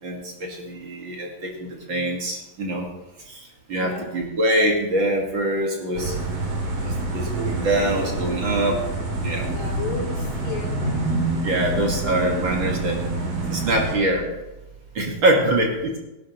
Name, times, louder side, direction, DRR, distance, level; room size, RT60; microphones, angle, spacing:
voice 1, 0.0-2.9 3.3-3.4 3.7-6.2 6.6-8.8 9.2-9.5 11.4-13.0 13.5-14.3 14.9-15.9, right 1 dB, 45° right, 0 dB, 1.8 m, -24 dB
sound 1, 6.0-14.0, right 2 dB, 65° right, 4.0 m, -27 dB
voice 2, 9.5-11.2 15.4-15.5, left 4 dB, 70° left, -2 dB, 4.4 m, -34 dB
17.5 x 12.0 x 3.0 m, 1.0 s
omnidirectional pair, 4.2 m